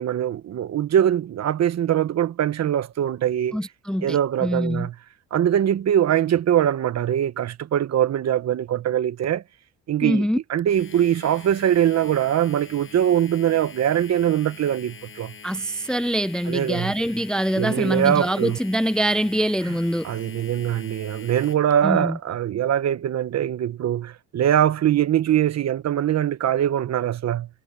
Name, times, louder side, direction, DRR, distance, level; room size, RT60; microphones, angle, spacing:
voice 1, 0.0-3.6 4.0-4.9 5.3-9.4 9.9-15.3 16.5-16.9 17.6-18.6 20.0-27.5, right 10 dB, 60° right, 1.1 m, -22 dB
voice 2, 3.5-4.9 10.0-10.4 15.4-20.1 21.8-22.2, equal, 5° left, 0.5 m, -24 dB
Domestic sounds home sounds, 10.6-21.7, left 6 dB, 45° left, 6.1 m, -44 dB
cardioid pair, 90°, 30 cm